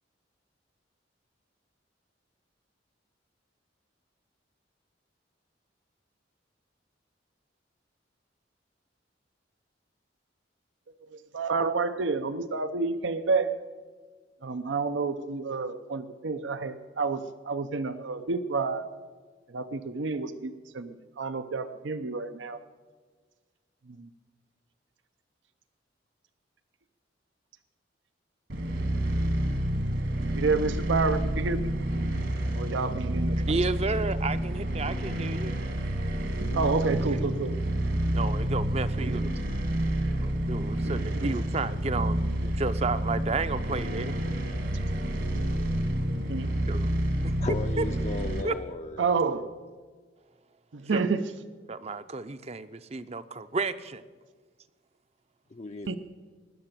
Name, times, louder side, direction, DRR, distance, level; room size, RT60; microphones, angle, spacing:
voice 1, 11.1-13.6 14.4-18.9 19.5-22.6 23.9-24.1 30.3-31.7 32.5-33.5 36.5-37.6 39.0-39.2 40.9-41.3 46.0-46.5 49.0-49.5 50.7-51.3 55.9-56.0, right 4 dB, 80° right, 11 dB, 0.7 m, -29 dB
sound 1, 28.5-48.4, right 1 dB, 65° right, 1.9 m, -29 dB
voice 2, 33.5-35.5 38.1-39.3 40.2-44.2 46.7-46.9 47.2-47.8 48.4-48.5 50.9-51.1 51.7-54.0, right 3 dB, 35° right, 12 dB, 0.6 m, -32 dB
voice 3, 47.4-49.0 55.5-56.0, left 2 dB, 35° left, 5 dB, 0.5 m, -35 dB
19.5 x 6.8 x 8.9 m, 1.5 s
head